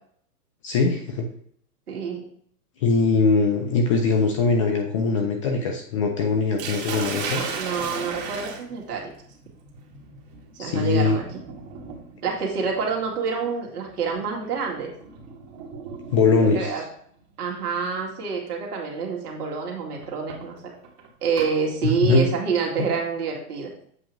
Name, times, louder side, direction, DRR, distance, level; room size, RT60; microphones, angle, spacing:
voice 1, 0.6-1.3 2.8-7.5 10.6-11.2 16.1-16.7 22.0-22.2, left 4 dB, 25° left, 4 dB, 0.4 m, -21 dB
voice 2, 1.9-2.3 7.6-9.1 10.5-11.4 12.2-14.9 16.4-16.8 17.4-20.7 21.2-23.7, right 5 dB, 75° right, -1 dB, 2.2 m, -27 dB
Sink (filling or washing), 6.6-16.5 17.6-18.0 18.5-18.6 20.0-21.5, right 5 dB, 40° right, 1.7 m, -36 dB
7.9 x 2.9 x 5.9 m, 0.63 s
hypercardioid pair, 135°, 46 cm